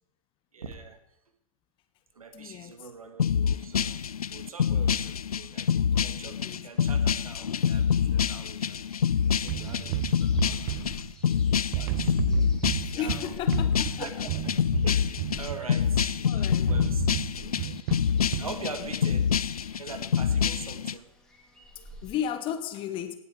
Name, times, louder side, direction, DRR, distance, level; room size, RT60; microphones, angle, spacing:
voice 1, 0.5-1.0 2.1-4.0 4.3-8.8 9.4-10.9 11.2-12.2 13.0-13.7 14.0-14.3 14.8-17.8 18.3-19.2 19.8-21.1 21.8-22.0, right 4 dB, 70° right, 1.8 m, -43 dB
voice 2, 2.3-2.9 4.8-5.1 6.1-6.9 10.6-11.1 12.2-12.7 12.9-14.3 16.3-17.3 18.4-18.9 22.0-23.1, left 9 dB, 25° left, 1.1 m, -37 dB
sound 1, 3.2-20.9, left 7 dB, 75° left, 0.5 m, -26 dB
sound 2, 6.3-22.3, left 1 dB, 5° left, 2.2 m, -52 dB
sound 3, 9.5-11.4 11.7-16.2 16.7-18.6, right 18 dB, 35° right, 0.4 m, -33 dB
18.0 x 8.5 x 4.7 m
figure-of-eight pair, 105°, 19 cm